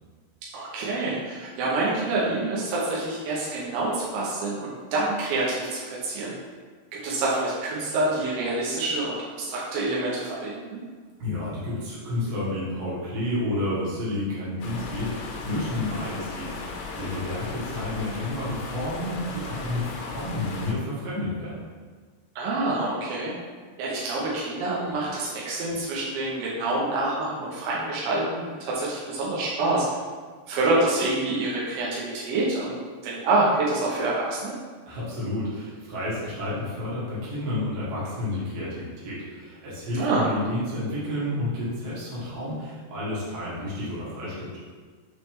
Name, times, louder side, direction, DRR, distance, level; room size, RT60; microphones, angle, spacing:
voice 1, 0.5-6.3 6.9-10.8 22.4-23.3 23.8-29.8 30.5-32.8 33.0-34.5 39.9-40.2, right 2 dB, 90° right, -5 dB, 2.3 m, -27 dB
voice 2, 11.2-21.6 25.7-25.8 34.9-44.5, left 1 dB, 55° right, -8 dB, 2.6 m, -30 dB
sound 1, 14.6-20.7, left 4 dB, 85° left, 3.0 m, -36 dB
9.1 x 3.2 x 3.6 m, 1.5 s
omnidirectional pair, 6.0 m